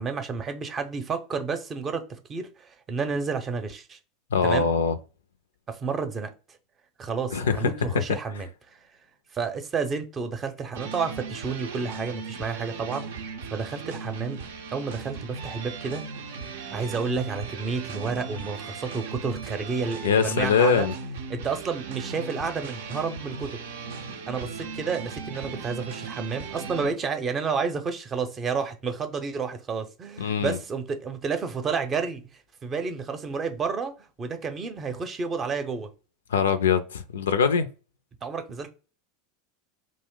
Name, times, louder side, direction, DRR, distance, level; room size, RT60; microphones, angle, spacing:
voice 1, 0.0-4.0 4.4-4.7 5.7-6.3 7.0-8.8 9.3-14.4 14.7-16.0 16.7-20.9 21.3-23.6 24.3-32.2 32.6-35.9 38.2-38.7, right 5 dB, 30° right, 0.6 m, -30 dB
voice 2, 4.3-5.0 7.3-8.0 20.0-20.9 30.2-30.6 36.3-37.7, left 6 dB, 80° left, 0.3 m, -23 dB
sound 1, 10.7-26.9, right 4 dB, 75° right, 0.5 m, -37 dB
2.6 x 2.0 x 3.6 m
hypercardioid pair, 85°, 0 cm